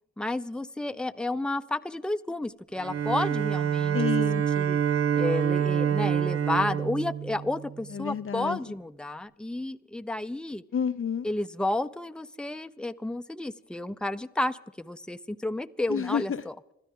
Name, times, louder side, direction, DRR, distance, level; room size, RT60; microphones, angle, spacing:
voice 1, 0.2-4.0 4.6-4.8 5.2-10.6 11.2-16.3, left 2 dB, 5° left, 10 dB, 0.7 m, -31 dB
Bowed string instrument, 2.8-8.0, right 8 dB, 50° right, 0.7 m, -27 dB
voice 2, 3.9-4.5 7.9-8.6 10.7-11.3 15.9-16.4, left 7 dB, 45° left, 12 dB, 0.6 m, -29 dB
26.0 x 13.0 x 3.8 m, 0.87 s
supercardioid pair, 40°, 30 cm